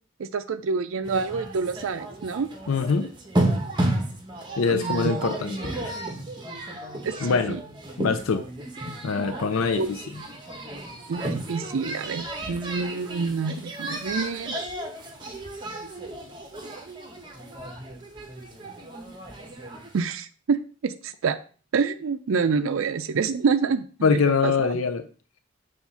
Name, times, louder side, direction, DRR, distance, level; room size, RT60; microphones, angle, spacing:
voice 1, 0.2-2.5 4.7-5.3 7.0-7.6 9.8-9.9 11.1-14.6 19.9-20.6 20.8-21.4 21.7-24.7, right 5 dB, 75° right, 9 dB, 0.4 m, -27 dB
sound 1, 1.0-20.0, right 1 dB, 20° right, 1.0 m, -33 dB
voice 2, 2.7-3.1 4.6-5.6 5.8-6.0 7.2-7.6 8.0-8.4 8.9-10.2 24.0-25.1, left 5 dB, 85° left, 7 dB, 0.5 m, -24 dB
7.0 x 2.5 x 5.6 m, 0.39 s
head